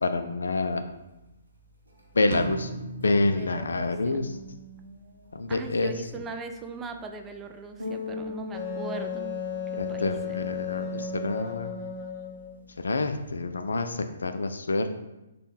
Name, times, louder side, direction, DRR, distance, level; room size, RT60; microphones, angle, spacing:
voice 1, 0.0-0.8 2.1-2.7 3.0-4.4 5.3-5.9 9.8-11.7 12.8-15.0, left 2 dB, 75° left, 8 dB, 0.3 m, -27 dB
sound 1, 0.9-13.4, left 2 dB, 85° right, 1.0 m, -44 dB
sound 2, 2.3-4.3, right 3 dB, 55° right, 0.6 m, -38 dB
voice 2, 3.3-4.2 5.5-9.3 9.7-10.4, right 4 dB, 15° right, 5 dB, 0.3 m, -40 dB
Wind instrument woodwind instrument, 8.5-12.6, left 6 dB, 30° left, 0.7 m, -34 dB
3.3 x 2.2 x 4.1 m, 0.99 s
figure-of-eight pair, 130°, 0 cm